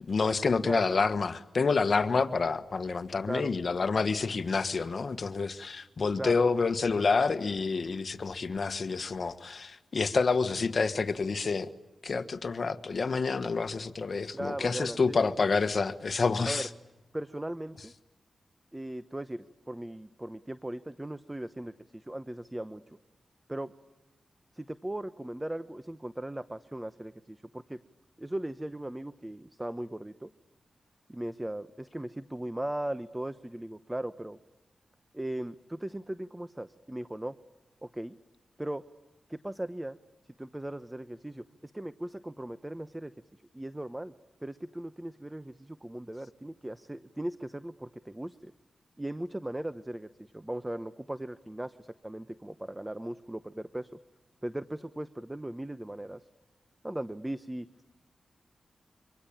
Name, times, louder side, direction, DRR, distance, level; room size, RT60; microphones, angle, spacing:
voice 1, 0.1-11.7 12.0-16.7, left 4 dB, 60° left, 1.4 m, -28 dB
voice 2, 6.2-6.5 14.3-15.3 16.4-16.7 17.1-17.9 18.7-22.8 23.5-23.7 24.5-27.8 28.2-30.3 31.1-34.4 35.1-37.3 37.8-38.2 38.6-38.8 39.3-40.0 40.4-43.1 43.5-44.1 44.4-48.5 49.0-53.9 54.4-56.3 56.8-57.7, right 1 dB, 15° right, 1.0 m, -38 dB
26.5 x 25.0 x 8.8 m
cardioid pair, 55°, 0 cm